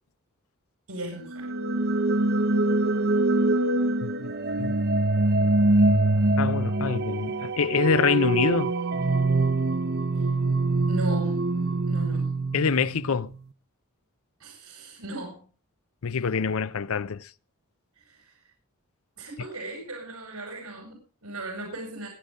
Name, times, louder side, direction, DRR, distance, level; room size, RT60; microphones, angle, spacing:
voice 1, 0.9-1.5 10.2-10.3 10.9-11.4 11.9-12.3 14.4-15.5 18.0-18.4 19.2-22.1, right 1 dB, 80° right, 5.5 m, -37 dB
sound 1, 1.3-13.2, right 2 dB, 45° right, 0.8 m, -24 dB
voice 2, 6.4-8.7 12.5-13.3 16.0-17.3, left 6 dB, 70° left, 0.6 m, -26 dB
21.0 x 8.4 x 3.7 m
head